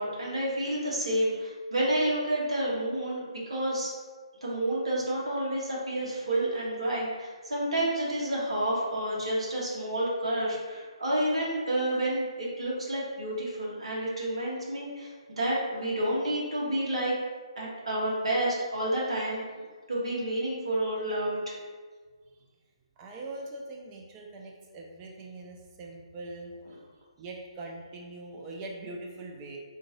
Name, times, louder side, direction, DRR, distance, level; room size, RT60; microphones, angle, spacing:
voice 1, 0.0-3.9 4.4-17.1 17.6-21.6, right 1 dB, 70° right, -5 dB, 1.3 m, -30 dB
voice 2, 23.0-26.8 27.2-29.6, right 2 dB, 25° right, 0 dB, 0.5 m, -42 dB
3.6 x 2.5 x 3.0 m, 1.5 s
figure-of-eight pair, 140°, 3 cm